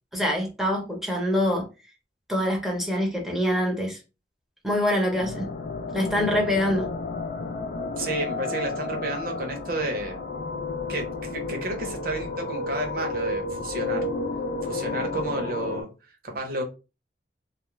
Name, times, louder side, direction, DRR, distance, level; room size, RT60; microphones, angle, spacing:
voice 1, 0.1-1.7 2.3-4.0 4.6-5.5 5.9-6.9, equal, ahead, 0.7 m, -25 dB
sound 1, 5.1-15.8, left 3 dB, 55° left, 0.4 m, -31 dB
voice 2, 8.0-10.2 10.9-14.1 14.6-16.6, right 2 dB, 55° right, 0.8 m, -31 dB
2.4 x 2.0 x 3.0 m
head